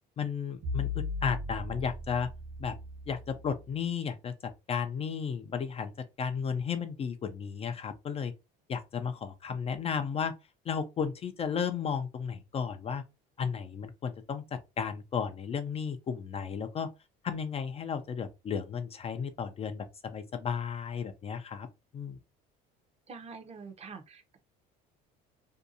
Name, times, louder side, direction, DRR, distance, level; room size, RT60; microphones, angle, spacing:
voice 1, 0.2-0.9 1.2-2.3 2.6-2.7 3.1-4.3 4.7-5.9 6.2-8.3 8.7-10.3 10.7-13.0 13.4-16.9 17.2-21.7 21.9-22.2, left 6 dB, 30° left, 0.4 m, -34 dB
sound 1, 0.6-3.7, left 3 dB, 60° right, 1.1 m, -37 dB
voice 2, 23.1-24.4, right 5 dB, 35° right, 0.6 m, -46 dB
2.7 x 2.2 x 2.5 m
supercardioid pair, 95°, 19 cm